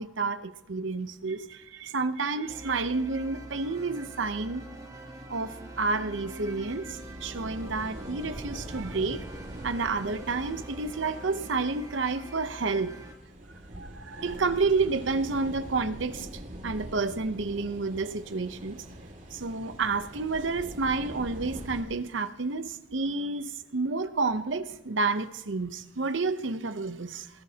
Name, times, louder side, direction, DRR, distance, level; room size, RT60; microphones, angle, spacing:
voice 1, 0.0-4.6 5.3-9.2 9.6-13.0 13.8-18.8 19.3-27.3, right 3 dB, 75° right, 11 dB, 0.8 m, -30 dB
sound 1, 2.5-13.1, right 1 dB, 20° right, 1.5 m, -44 dB
sound 2, 6.1-21.8, right 1 dB, 40° right, 2.3 m, -44 dB
19.5 x 16.5 x 2.9 m, 0.85 s
head